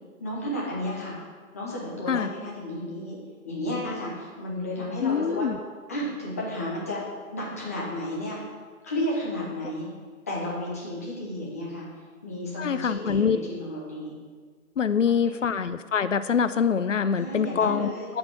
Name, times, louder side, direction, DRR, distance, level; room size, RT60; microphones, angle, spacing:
voice 1, 0.2-1.2 1.5-3.2 3.4-5.5 5.9-7.0 7.3-8.4 8.8-9.9 10.3-11.9 12.2-14.2 15.0-15.1 15.5-15.7 17.1-18.1, left 1 dB, 10° left, -5 dB, 0.8 m, -32 dB
voice 2, 5.0-5.6 12.6-13.4 14.8-18.2, left 7 dB, 55° left, 12 dB, 0.6 m, -25 dB
7.9 x 5.3 x 7.3 m, 1.5 s
figure-of-eight pair, 155°, 44 cm